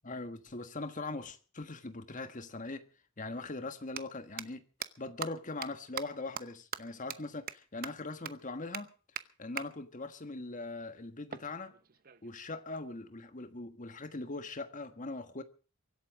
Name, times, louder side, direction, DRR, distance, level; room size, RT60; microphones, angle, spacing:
voice 1, 0.0-2.8 3.2-4.6 5.0-8.9 9.4-11.7 12.2-15.4, left 3 dB, 40° left, 1.5 m, -41 dB
sound 1, 2.7-2.8 3.8-4.0 4.4-4.5 4.8-4.9 5.2-5.3 5.6-5.7 6.0-6.1 6.4-6.5 6.7-6.8 7.1-7.2 7.5-7.6 7.8-7.9 8.2-8.3 8.7-8.8 9.2-9.3 9.6-9.7 11.3-12.3, right 8 dB, 45° right, 0.9 m, -39 dB
23.5 x 8.5 x 6.3 m
head